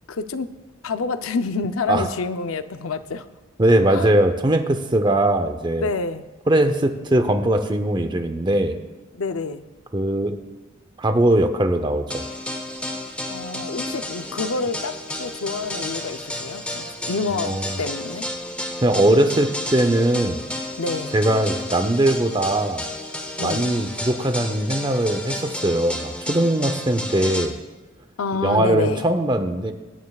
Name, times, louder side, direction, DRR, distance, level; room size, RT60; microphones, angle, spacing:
voice 1, 0.1-0.5 0.8-3.3 3.9-4.1 5.8-6.3 9.1-9.6 13.3-18.3 20.8-21.2 23.4-23.7 28.2-29.0, left 4 dB, 90° left, 10 dB, 0.6 m, -28 dB
voice 2, 3.6-5.9 6.5-8.8 9.9-10.4 11.0-12.2 17.4-17.8 18.8-20.4 21.1-22.9 23.4-27.6 28.4-29.7, right 1 dB, 20° right, 8 dB, 0.7 m, -20 dB
sound 1, 12.1-27.5, left 1 dB, 5° left, 0.9 m, -32 dB
23.0 x 9.5 x 2.4 m, 1.2 s
head